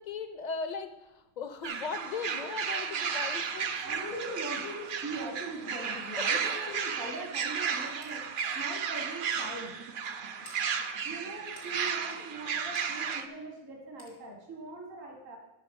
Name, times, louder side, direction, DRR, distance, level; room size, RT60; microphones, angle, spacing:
voice 1, 0.0-3.8 6.2-6.3, left 5 dB, 40° left, 9 dB, 0.7 m, -38 dB
sound 1, 1.6-13.3, right 6 dB, 55° right, 0.6 m, -34 dB
voice 2, 3.8-8.2 8.5-9.8 11.0-15.4, right 2 dB, 70° right, 0 dB, 2.0 m, -41 dB
sound 2, 8.0-8.2 8.7-8.8 9.3-9.5 10.4-10.6 11.6-11.7 12.7-12.9 14.0-14.2, left 2 dB, 80° left, 2.4 m, -52 dB
11.5 x 5.8 x 5.2 m, 0.97 s
omnidirectional pair, 1.4 m